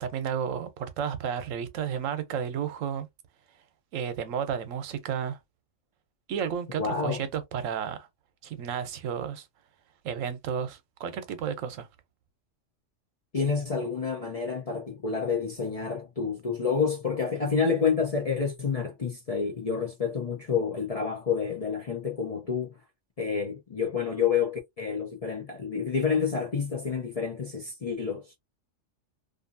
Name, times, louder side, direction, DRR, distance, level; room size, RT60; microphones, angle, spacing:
voice 1, 0.0-3.1 3.9-5.4 6.3-8.1 8.4-9.5 10.0-11.9, right 8 dB, 80° right, 1.0 m, -32 dB
voice 2, 6.8-7.2 13.3-22.7 23.2-28.4, left 6 dB, 45° left, 0.5 m, -29 dB
2.6 x 2.5 x 2.5 m
omnidirectional pair, 1.3 m